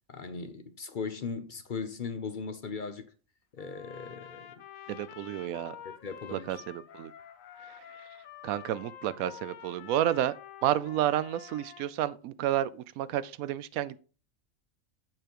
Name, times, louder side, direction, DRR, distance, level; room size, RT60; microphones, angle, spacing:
voice 1, 0.1-3.1 3.6-4.6 5.8-6.6, left 5 dB, 45° left, 0.7 m, -38 dB
Trumpet, 3.6-11.9, left 10 dB, 75° left, 1.1 m, -48 dB
voice 2, 4.9-5.8 6.3-7.1 8.4-10.3 10.6-14.0, right 12 dB, 90° right, 1.0 m, -30 dB
7.6 x 6.8 x 3.0 m
omnidirectional pair, 1.4 m